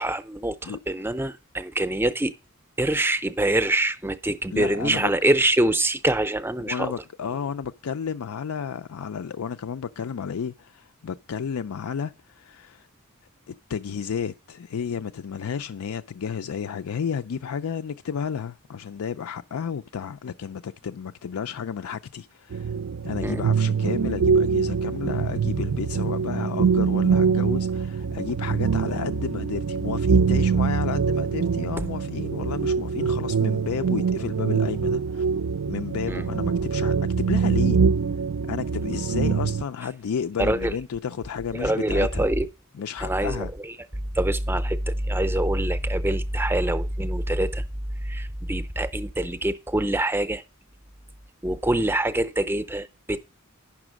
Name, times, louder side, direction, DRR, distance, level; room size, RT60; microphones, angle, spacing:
voice 1, 0.0-2.3 2.8-6.9 23.2-23.4 36.1-36.2 40.4-40.7 41.5-42.5 43.0-43.4 44.1-47.6 48.0-50.4 51.4-53.2, right 1 dB, 10° right, 0.5 m, -24 dB
voice 2, 4.5-5.1 6.6-12.9 13.5-22.7 23.0-35.3 35.7-37.8 38.5-42.3 42.7-43.5, left 7 dB, 90° left, 0.4 m, -32 dB
sound 1, 22.5-39.6, right 6 dB, 70° right, 0.4 m, -24 dB
9.7 x 6.0 x 6.2 m
head